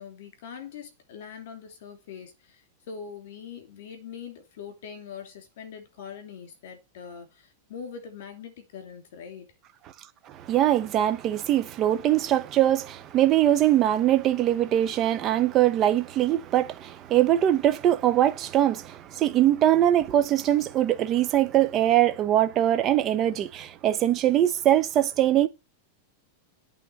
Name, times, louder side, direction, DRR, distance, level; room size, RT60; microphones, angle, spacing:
voice 1, 0.0-9.5, left 7 dB, 55° left, 2.8 m, -42 dB
voice 2, 10.3-25.5, right 12 dB, 20° right, 0.6 m, -22 dB
8.6 x 3.6 x 6.7 m
supercardioid pair, 175°, 0 cm